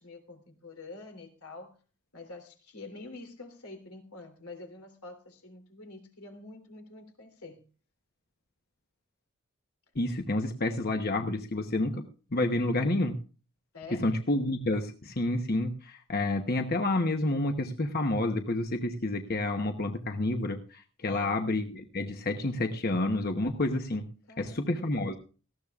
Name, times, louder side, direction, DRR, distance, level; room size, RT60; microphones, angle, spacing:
voice 1, 0.0-1.8 2.1-7.7 13.7-14.1 21.0-21.4 24.3-25.0, left 2 dB, 85° left, 3.3 m, -47 dB
voice 2, 9.9-12.0 12.3-13.2 14.0-24.0 24.4-25.2, left 2 dB, 45° left, 1.0 m, -29 dB
18.5 x 15.5 x 2.4 m
head